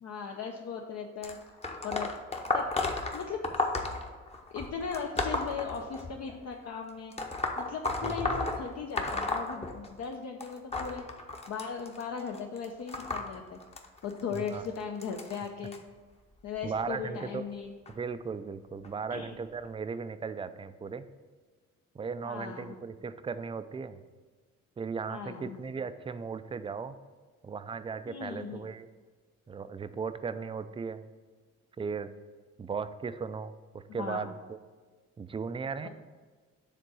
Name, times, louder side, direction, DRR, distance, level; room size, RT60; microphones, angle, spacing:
voice 1, 0.0-1.4 1.7-2.1 2.5-2.7 3.1-3.7 4.5-7.1 7.6-11.1 11.5-13.6 14.0-15.8 16.4-17.7 19.1-19.4 22.2-22.8 25.1-25.6 28.1-28.7 33.9-34.3 35.8-35.9, left 6 dB, 60° left, 2 dB, 0.7 m, -38 dB
sound 1, 1.2-6.4 7.1-10.1 10.4-15.8 16.6-16.8 17.9-18.0 18.8-18.9 19.6-19.7, left 2 dB, 20° left, 0.8 m, -34 dB
voice 2, 8.0-8.4 14.3-14.6 16.6-17.4 18.0-21.1 21.9-24.0 24.8-27.0 27.4-28.9 29.5-31.0 31.8-32.1 32.6-34.6 35.2-35.9, right 5 dB, 20° right, 12 dB, 0.3 m, -37 dB
6.8 x 3.7 x 6.1 m, 1.4 s
cardioid pair, 90°, 30 cm